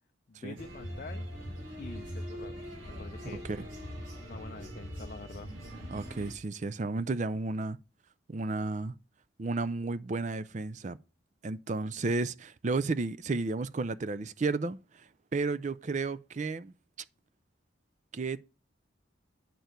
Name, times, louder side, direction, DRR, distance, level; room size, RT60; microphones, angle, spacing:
voice 1, 0.3-1.3 1.8-3.4 4.2-5.5, left 4 dB, 45° left, 0.4 m, -46 dB
sound 1, 0.6-6.3, equal, 85° right, 4.2 m, -41 dB
voice 2, 5.9-7.8 8.3-8.9 9.4-11.0 11.4-16.7 18.1-18.4, right 3 dB, 35° right, 0.4 m, -33 dB
9.1 x 4.6 x 5.0 m
head